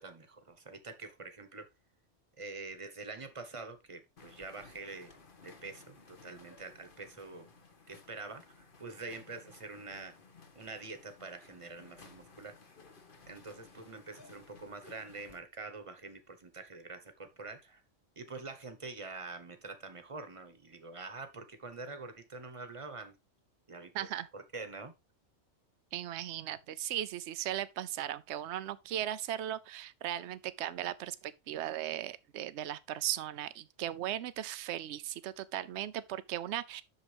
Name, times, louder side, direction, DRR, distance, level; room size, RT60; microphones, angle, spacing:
voice 1, 0.0-1.7 2.4-5.1 5.4-7.5 7.9-10.2 10.5-12.6 13.3-17.8 18.2-23.1 23.7-23.9 24.3-24.9, right 3 dB, 25° right, 1.2 m, -45 dB
sound 1, 4.2-15.4, left 4 dB, 45° left, 1.4 m, -58 dB
voice 2, 23.9-24.3 25.9-36.8, right 12 dB, 70° right, 0.9 m, -37 dB
8.3 x 6.7 x 3.4 m
omnidirectional pair, 1.2 m